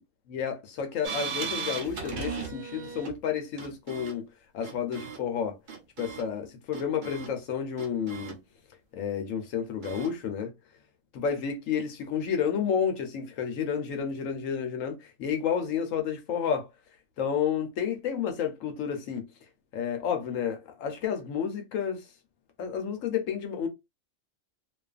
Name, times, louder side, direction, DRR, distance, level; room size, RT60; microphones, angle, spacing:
voice 1, 0.3-4.3 4.5-5.6 6.0-8.4 8.9-10.5 11.1-16.7 17.2-19.2 19.7-22.1 22.6-23.7, left 7 dB, 80° left, 1.1 m, -30 dB
sound 1, 1.0-3.2 3.6-4.2 4.6-5.2 5.7-6.3 6.7-7.3 7.8-8.4 9.8-10.1, right 5 dB, 55° right, 0.6 m, -36 dB
2.5 x 2.4 x 2.3 m
omnidirectional pair, 1.4 m